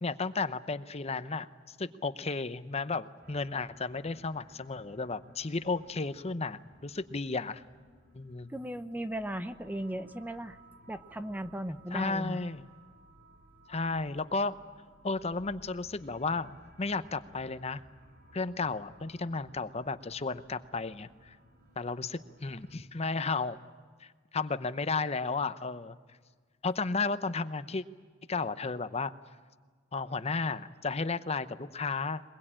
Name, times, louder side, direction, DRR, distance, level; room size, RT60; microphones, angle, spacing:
voice 1, 0.0-7.6 8.1-8.5 11.9-12.6 13.7-14.6 15.0-17.8 18.3-21.4 21.8-23.6 24.0-26.0 26.6-27.8 28.3-29.1 29.9-32.2, left 4 dB, 35° left, 12 dB, 0.8 m, -33 dB
sound 1, 3.2-22.8, right 1 dB, 55° right, 2.5 m, -59 dB
voice 2, 8.5-10.6 10.9-12.4, right 1 dB, 10° right, 11 dB, 0.7 m, -37 dB
22.5 x 21.0 x 8.8 m, 1.5 s
head